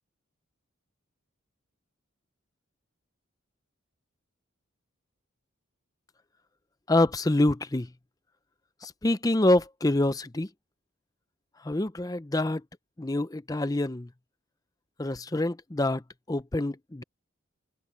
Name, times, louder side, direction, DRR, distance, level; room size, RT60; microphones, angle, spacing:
voice 1, 6.9-7.9 8.8-10.5 11.6-12.6 13.0-14.1 15.0-16.0 16.3-17.0, left 2 dB, 15° left, 0.6 m, -26 dB
head